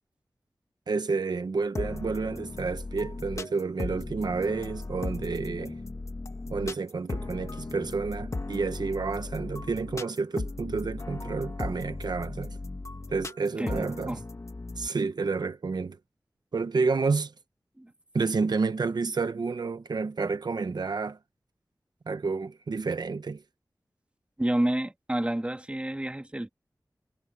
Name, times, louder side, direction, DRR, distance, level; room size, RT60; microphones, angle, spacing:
voice 1, 0.9-5.8 6.5-12.6 13.1-14.2 14.8-16.0 16.5-17.3 18.1-21.2 22.1-23.4, right 4 dB, 80° right, 0.9 m, -30 dB
sound 1, 1.7-14.9, left 3 dB, 45° left, 1.5 m, -37 dB
voice 2, 13.6-14.2 17.8-17.9 24.4-26.5, right 1 dB, 15° right, 1.6 m, -29 dB
wide cardioid pair, 85°, 7 cm